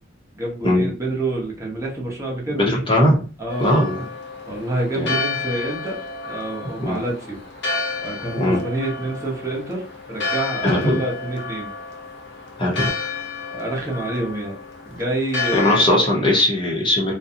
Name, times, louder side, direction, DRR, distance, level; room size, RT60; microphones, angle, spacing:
voice 1, 0.4-2.7 3.4-3.7 4.5-6.0 6.3-7.4 8.0-11.7 13.5-14.6 14.9-15.8, right 2 dB, 15° right, -3 dB, 0.9 m, -27 dB
voice 2, 2.6-3.2 3.6-4.0 5.0-5.1 6.8-7.0 8.4-8.6 10.6-11.0 12.6-12.9 15.5-17.1, left 1 dB, 25° left, -3 dB, 0.9 m, -19 dB
Church bell, 3.5-15.9, left 4 dB, 60° left, 0.6 m, -31 dB
2.6 x 2.3 x 2.7 m, 0.37 s
head